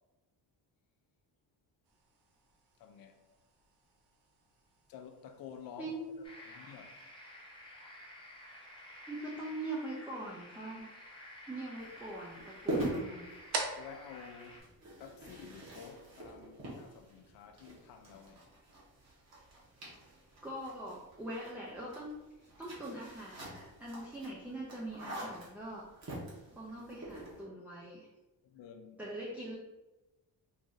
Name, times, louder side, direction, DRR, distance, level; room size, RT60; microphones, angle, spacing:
sound 1, 1.8-15.5, right 3 dB, 85° right, 0.8 m, -48 dB
voice 1, 2.8-3.2 4.9-7.3 13.7-14.7 15.0-18.4 28.4-29.0, left 7 dB, 65° left, 0.5 m, -51 dB
voice 2, 5.8-6.1 9.1-10.9 11.5-13.3 20.4-22.1 22.6-25.8 26.6-28.1 29.0-29.5, right 1 dB, 5° right, 0.4 m, -42 dB
sound 2, 6.2-14.6, left 1 dB, 15° left, 0.8 m, -52 dB
sound 3, 11.8-27.4, right 1 dB, 45° right, 1.1 m, -44 dB
3.1 x 2.5 x 3.8 m
cardioid pair, 160°, 38 cm